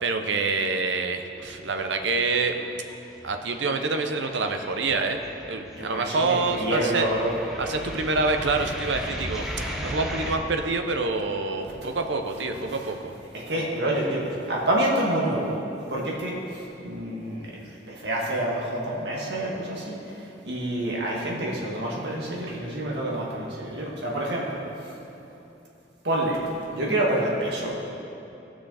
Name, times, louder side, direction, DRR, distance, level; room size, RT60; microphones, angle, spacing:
voice 1, 0.0-2.6 3.2-7.1 7.6-9.5 9.8-13.1, right 3 dB, 85° right, 5 dB, 0.8 m, -26 dB
sound 1, 1.3-2.0 2.3-10.4, equal, ahead, 1.0 m, -37 dB
voice 2, 5.8-7.3 13.3-15.5 15.9-20.0 20.4-24.6 26.0-26.4 26.7-27.7, right 1 dB, 70° right, -4 dB, 2.0 m, -27 dB
17.5 x 6.2 x 4.1 m, 2.9 s
head